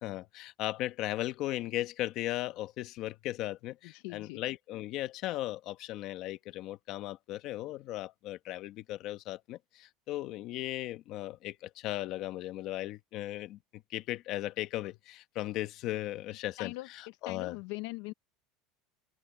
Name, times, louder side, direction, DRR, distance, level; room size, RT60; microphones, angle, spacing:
voice 1, 0.0-17.6, left 15 dB, 40° left, 1.0 m, -37 dB
voice 2, 3.9-4.4 16.6-16.9 17.3-18.1, left 22 dB, 60° left, 0.6 m, -40 dB
cardioid pair, 170°, 0 cm